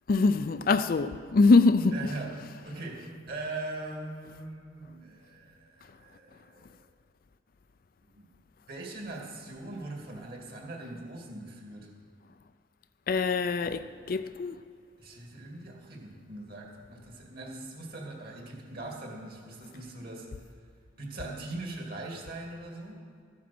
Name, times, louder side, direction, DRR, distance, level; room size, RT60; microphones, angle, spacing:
voice 1, 0.1-1.9 13.1-14.6, left 3 dB, 45° left, 0.4 m, -23 dB
voice 2, 1.9-6.8 8.1-8.3 8.7-11.9 15.0-20.3 21.0-23.0, right 2 dB, 50° right, 2.4 m, -41 dB
14.0 x 9.4 x 6.0 m
head